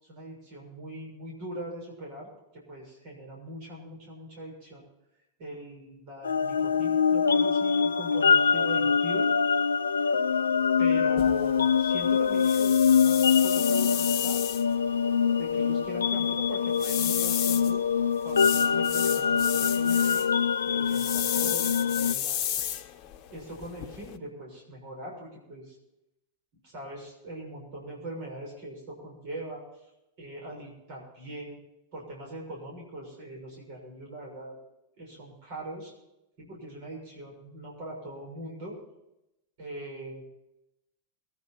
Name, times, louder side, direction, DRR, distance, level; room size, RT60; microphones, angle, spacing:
voice 1, 0.0-4.9 5.4-9.3 10.8-14.4 15.4-17.8 18.2-20.3 20.7-22.5 23.3-25.8 26.6-29.6 30.2-31.6 31.9-34.5 35.0-35.9 36.4-38.8 39.6-40.2, right 1 dB, 50° right, -2 dB, 6.6 m, -41 dB
sound 1, 6.2-22.1, left 6 dB, 70° left, 0.4 m, -24 dB
sound 2, 11.2-24.2, left 10 dB, 40° left, 1.1 m, -34 dB
23.0 x 10.0 x 4.5 m, 0.89 s
figure-of-eight pair, 90°, 0 cm